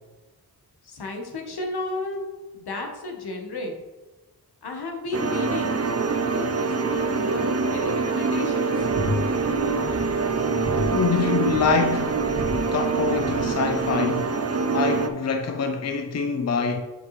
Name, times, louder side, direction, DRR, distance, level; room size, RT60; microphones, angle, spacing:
voice 1, 0.8-2.3 2.5-3.8 4.6-5.8 6.3-8.9, left 2 dB, 80° left, 1.2 m, -33 dB
sound 1, 5.1-15.1, right 4 dB, 40° right, 0.5 m, -25 dB
sound 2, 8.8-13.9, equal, 80° right, 1.7 m, -34 dB
voice 2, 10.9-12.3 12.7-14.3 14.7-16.8, left 5 dB, 45° left, 0.5 m, -25 dB
7.5 x 5.5 x 3.1 m
wide cardioid pair, 120°, 38 cm